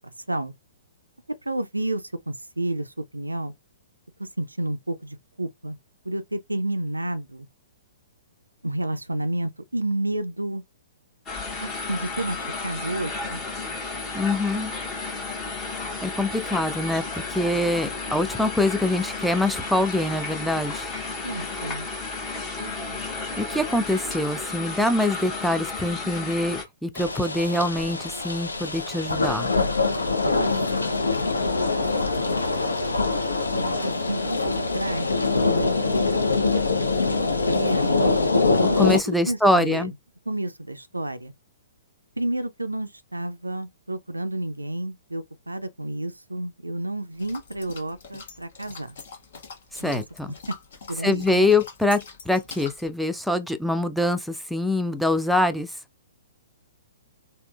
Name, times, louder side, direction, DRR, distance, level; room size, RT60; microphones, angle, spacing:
voice 1, 1.5-2.9 3.1-3.5 4.2-5.8 6.1-7.5 8.6-10.6 11.6-13.4 21.2-21.9 22.6-23.1 30.3-30.8 31.2-31.3 33.3-36.1 37.4-38.4 39.1-39.9 40.3-41.3 42.2-48.9 49.8-50.0 50.5-50.6 50.9-51.5, right 1 dB, 80° right, 0.3 m, -31 dB
sound 1, 11.3-26.6, left 3 dB, 20° left, 0.8 m, -33 dB
voice 2, 14.1-14.7 16.0-20.9 23.4-29.5 38.8-39.9 49.8-50.3 51.0-52.0 52.3-55.7, left 1 dB, ahead, 0.3 m, -24 dB
sound 2, 27.0-39.0, left 3 dB, 75° left, 0.5 m, -24 dB
sound 3, 47.1-52.9, left 5 dB, 50° left, 0.8 m, -44 dB
3.5 x 2.1 x 2.3 m
figure-of-eight pair, 120°, 0 cm